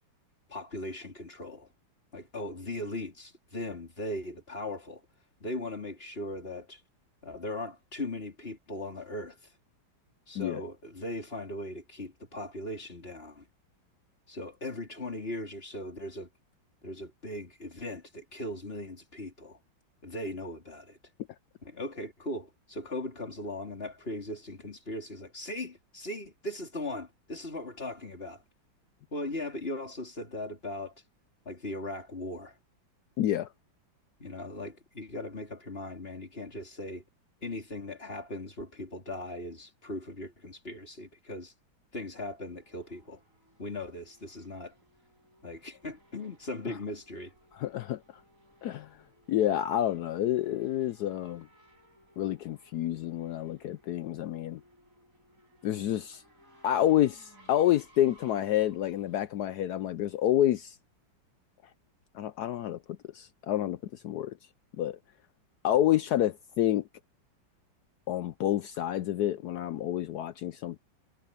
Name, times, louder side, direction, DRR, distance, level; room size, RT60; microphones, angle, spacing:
voice 1, 0.5-1.7 2.1-5.0 5.4-6.8 7.2-9.4 10.3-13.5 14.3-16.3 16.8-19.6 20.0-21.0 21.6-28.4 29.1-30.9 31.5-32.6 34.2-37.0 37.4-41.5 41.9-43.2 43.6-44.7 45.4-47.3, left 1 dB, 30° left, 4.0 m, -39 dB
voice 2, 33.2-33.5 46.6-46.7 47.5-48.0 48.6-48.9 49.3-51.5 52.2-54.6 55.6-56.2 56.6-60.8 62.1-62.8 63.1-64.3 64.8-65.0 65.6-66.9 68.1-70.8, left 12 dB, 70° left, 1.0 m, -28 dB
Race car auto racing / Accelerating revving vroom, 42.1-60.2, equal, 40° right, 8.0 m, -62 dB
omnidirectional pair, 2.1 m